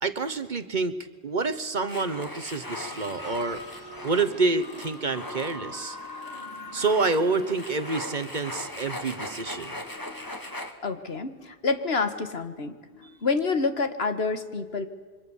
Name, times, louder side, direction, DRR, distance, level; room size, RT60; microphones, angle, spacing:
voice 1, 0.0-1.0 1.2-3.6 4.0-6.0 6.7-9.8 13.0-13.1, right 3 dB, 45° right, 11 dB, 1.2 m, -28 dB
sound 1, 1.9-10.7, left 1 dB, 20° left, 1.9 m, -39 dB
sound 2, 2.8-9.8, left 1 dB, 35° left, 2.8 m, -43 dB
voice 2, 9.9-10.3 10.8-14.9, left 4 dB, 70° left, 9 dB, 1.8 m, -28 dB
27.0 x 24.0 x 7.2 m, 1.4 s
omnidirectional pair, 1.1 m